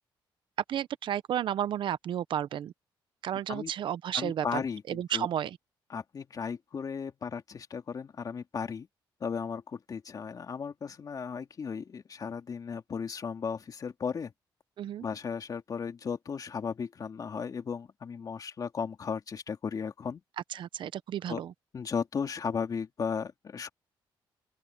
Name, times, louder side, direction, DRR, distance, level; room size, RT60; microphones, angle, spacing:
voice 1, 0.7-2.7 3.2-4.6 4.9-5.6 14.8-15.0 20.5-21.5, right 10 dB, 65° right, 0.8 m, -32 dB
voice 2, 4.1-5.3 5.9-8.9 9.2-14.3 15.0-20.2 21.3-21.4 21.7-23.7, left 6 dB, 45° left, 2.6 m, -35 dB
open air
cardioid pair, 100°, 9 cm